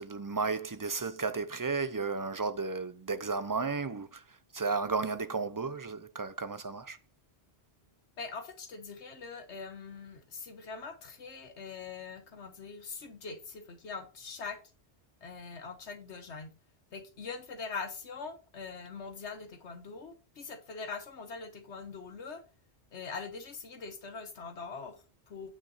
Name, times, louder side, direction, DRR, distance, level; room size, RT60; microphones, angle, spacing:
voice 1, 0.0-4.2 4.5-7.0, right 4 dB, 30° right, 0.4 m, -33 dB
voice 2, 8.2-14.6 15.2-16.5 16.9-22.4 22.9-25.5, left 4 dB, 85° left, 1.5 m, -43 dB
9.1 x 6.0 x 4.0 m
omnidirectional pair, 1.1 m